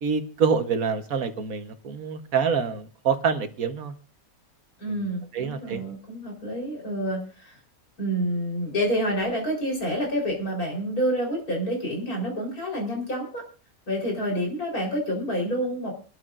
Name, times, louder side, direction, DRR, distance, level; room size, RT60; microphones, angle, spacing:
voice 1, 0.0-3.9 4.9-5.0 5.3-5.8, right 6 dB, 70° right, 1.6 m, -26 dB
voice 2, 4.8-7.5 8.0-13.4 13.9-15.9, equal, 80° left, 4.6 m, -28 dB
27.0 x 12.5 x 2.5 m
omnidirectional pair, 1.5 m